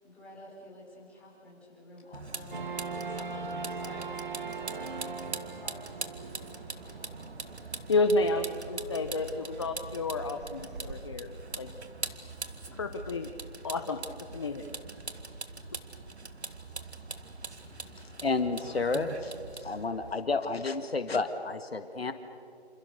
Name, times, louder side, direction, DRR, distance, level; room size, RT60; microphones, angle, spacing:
voice 1, 0.0-2.6 2.9-5.1 5.5-7.2, left 1 dB, 5° left, -7 dB, 4.6 m, -50 dB
Vehicle, 2.1-20.1, right 3 dB, 75° right, 2.0 m, -42 dB
sound 1, 2.5-11.0, right 4 dB, 45° right, 2.4 m, -41 dB
voice 2, 7.9-11.3 11.6-11.7 12.8-13.3 13.6-14.0 14.3-14.7, left 2 dB, 25° left, 7 dB, 0.9 m, -30 dB
voice 3, 18.2-19.3 19.6-22.1, left 3 dB, 65° left, 9 dB, 1.8 m, -30 dB
28.0 x 27.5 x 6.7 m, 2.6 s
figure-of-eight pair, 160°, 33 cm